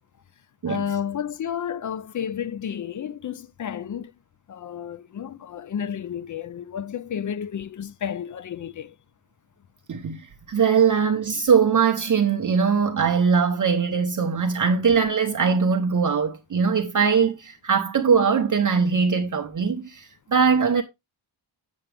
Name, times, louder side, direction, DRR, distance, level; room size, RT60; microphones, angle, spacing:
voice 1, 0.7-4.1 4.5-8.9, left 8 dB, 40° left, 0.4 m, -31 dB
voice 2, 9.9-10.2 10.5-20.8, right 6 dB, 40° right, 0.9 m, -21 dB
8.2 x 7.1 x 3.3 m
wide cardioid pair, 155°, 49 cm